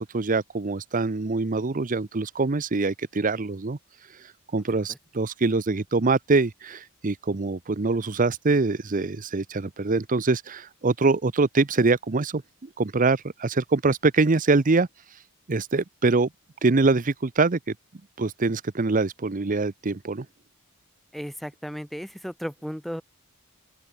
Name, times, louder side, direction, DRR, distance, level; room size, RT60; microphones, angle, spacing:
voice 1, 0.0-3.8 4.1-15.2 15.5-16.3 16.6-17.6 18.2-20.3, right 3 dB, 40° right, 0.7 m, -24 dB
voice 2, 21.1-23.0, equal, ahead, 1.6 m, -35 dB
open air
head